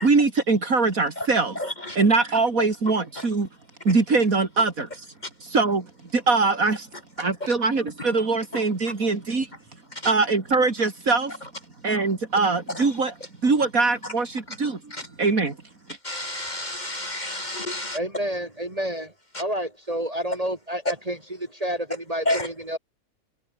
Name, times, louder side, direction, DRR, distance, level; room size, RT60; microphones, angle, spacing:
voice 1, 0.0-1.6 1.9-3.5 3.8-5.1 5.4-5.9 6.1-6.9 7.2-9.5 10.0-11.4 11.8-13.2 13.4-14.8 15.2-15.5, right 3 dB, 70° right, 3.5 m, -22 dB
voice 2, 16.1-18.0 22.3-22.4, left 1 dB, 30° left, 1.9 m, -29 dB
voice 3, 17.9-19.1 19.4-22.8, right 1 dB, 25° right, 2.9 m, -29 dB
omnidirectional pair, 1.5 m